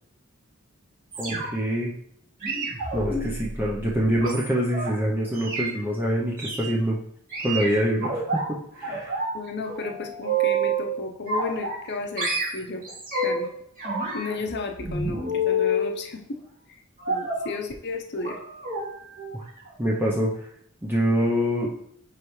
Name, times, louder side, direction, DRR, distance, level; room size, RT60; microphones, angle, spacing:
sound 1, 1.1-1.7 2.4-4.9 5.3-5.7 6.4-6.7 7.3-8.4 8.8-9.4 9.7-10.9 11.3-11.9 12.2-13.5 13.8-15.9 17.0-17.5 18.2-18.4 18.6-18.8 19.2-19.4 19.7-19.8, right 1 dB, 40° right, 2.2 m, -28 dB
voice 1, 1.2-1.9 2.9-7.0 7.4-9.2 19.8-20.5 20.8-21.7, equal, 10° right, -5 dB, 0.7 m, -25 dB
voice 2, 9.3-12.8 13.2-13.5 14.1-16.4 17.1-18.4, left 3 dB, 55° left, 3 dB, 0.8 m, -33 dB
9.8 x 3.3 x 3.1 m, 0.67 s
head